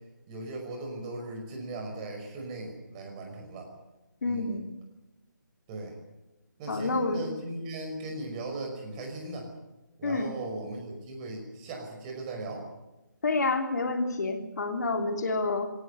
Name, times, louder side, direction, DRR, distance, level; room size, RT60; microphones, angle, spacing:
voice 1, 0.3-3.7 4.2-4.6 5.7-6.0 6.6-9.5 10.0-12.7, right 2 dB, 20° right, 2 dB, 5.6 m, -38 dB
voice 2, 4.2-4.6 6.7-7.2 10.0-10.4 13.2-15.7, left 3 dB, 60° left, 5 dB, 3.2 m, -28 dB
21.0 x 18.0 x 9.3 m, 1.0 s
figure-of-eight pair, 155°, 11 cm